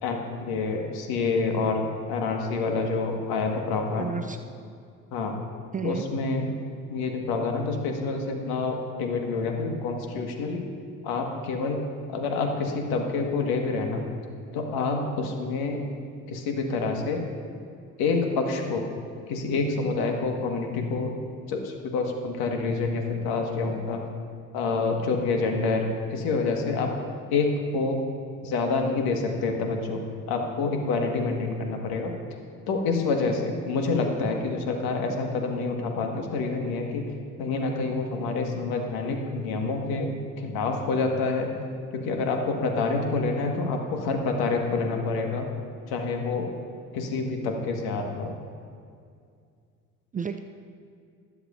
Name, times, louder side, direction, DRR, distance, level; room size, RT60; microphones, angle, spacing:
voice 1, 0.0-4.1 5.1-5.3 5.8-6.5 6.9-10.7 11.0-11.8 12.1-14.0 14.5-15.8 16.3-17.2 18.0-18.9 19.3-21.1 21.5-24.0 24.5-26.9 27.3-28.0 28.4-30.0 30.3-32.1 32.7-37.1 37.4-40.1 40.4-41.5 41.9-45.5 45.9-46.5 46.9-48.3, left 3 dB, 60° left, 3 dB, 1.7 m, -27 dB
voice 2, 3.9-4.4 5.7-6.0 50.1-50.4, right 6 dB, 20° right, 8 dB, 0.5 m, -31 dB
20.0 x 7.9 x 2.6 m, 2.3 s
hypercardioid pair, 60°, 42 cm